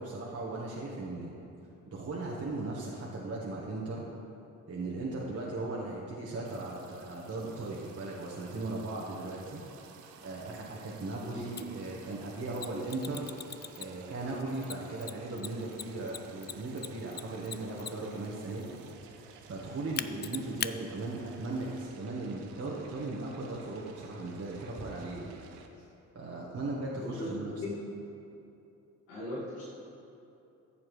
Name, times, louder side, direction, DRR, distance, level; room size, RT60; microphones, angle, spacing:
voice 1, 0.0-1.4 1.9-4.1 4.7-9.6 10.2-13.3 13.8-18.8 19.5-25.4 26.1-27.5, right 2 dB, 40° right, -4 dB, 1.5 m, -37 dB
sound 1, 6.4-25.7, right 6 dB, 90° right, 0.7 m, -53 dB
Mechanisms, 11.6-11.7 12.6-14.1 14.6-18.2 20.0-20.7, left 8 dB, 30° left, 0.4 m, -38 dB
voice 2, 27.0-27.7 29.1-29.6, left 2 dB, 85° left, -8 dB, 2.4 m, -38 dB
13.5 x 7.1 x 3.3 m, 2.8 s
hypercardioid pair, 50°, 35 cm